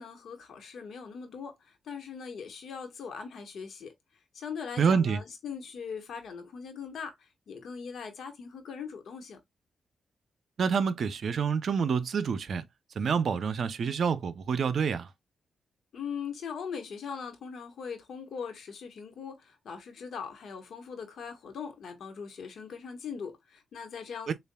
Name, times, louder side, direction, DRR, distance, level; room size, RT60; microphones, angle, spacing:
voice 1, 0.0-3.9 4.3-7.1 7.5-9.4 15.9-24.3, left 6 dB, 70° left, 1.3 m, -40 dB
voice 2, 4.8-5.2 10.6-12.6 13.0-15.1 24.3-24.4, right 6 dB, 65° right, 0.6 m, -27 dB
6.6 x 2.5 x 2.2 m
cardioid pair, 85°, 0 cm